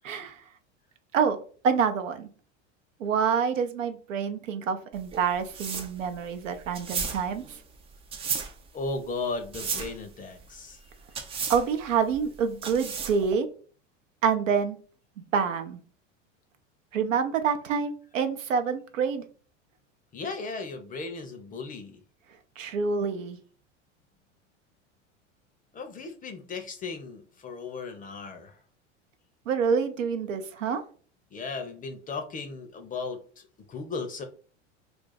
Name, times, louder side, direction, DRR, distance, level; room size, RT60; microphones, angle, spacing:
voice 1, 0.0-0.4 1.1-1.4 1.6-2.3 3.0-7.6 11.5-13.5 14.2-14.8 15.3-15.8 16.9-19.2 22.6-23.4 29.5-30.8, right 6 dB, 85° right, 0.6 m, -27 dB
sound 1, 4.9-13.3, right 5 dB, 15° right, 0.3 m, -35 dB
voice 2, 8.7-10.8 20.1-22.0 25.7-28.5 31.3-33.2 33.7-34.2, left 3 dB, 20° left, 0.6 m, -36 dB
2.5 x 2.3 x 3.9 m
hypercardioid pair, 90°, 37 cm